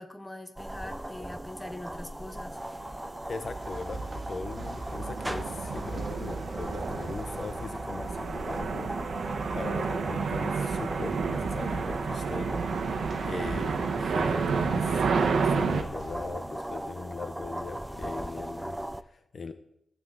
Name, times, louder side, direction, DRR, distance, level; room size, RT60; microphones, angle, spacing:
voice 1, 0.0-2.6, left 1 dB, 10° left, 6 dB, 1.2 m, -42 dB
sound 1, 0.6-19.0, right 1 dB, 5° right, 0.4 m, -39 dB
sound 2, 2.8-3.0 3.5-15.8, right 5 dB, 80° right, 1.1 m, -31 dB
sound 3, 3.2-16.3, right 2 dB, 40° right, 3.0 m, -41 dB
voice 2, 3.3-12.5 13.2-19.5, left 4 dB, 50° left, 9 dB, 0.7 m, -40 dB
15.5 x 9.8 x 3.9 m, 0.77 s
wide cardioid pair, 110°, 0 cm